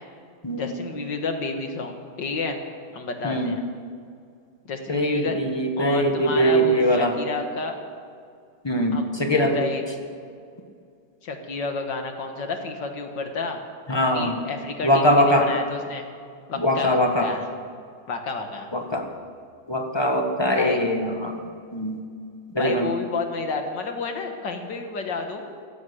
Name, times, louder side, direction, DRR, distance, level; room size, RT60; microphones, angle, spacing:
voice 1, 0.6-2.6 2.9-3.6 4.7-5.4 5.8-7.8 8.9-9.8 11.2-13.6 13.9-16.1 16.5-17.5 18.1-18.7 20.5-20.8 22.6-25.5, left 3 dB, 60° left, 5 dB, 2.0 m, -30 dB
voice 2, 4.9-7.1 8.6-9.6 13.9-14.4 14.8-15.5 16.6-17.3 18.7-19.0 19.7-21.4 21.7-22.0 22.5-22.9, equal, 15° left, 3 dB, 1.2 m, -22 dB
15.5 x 11.5 x 8.2 m, 2.3 s
omnidirectional pair, 2.2 m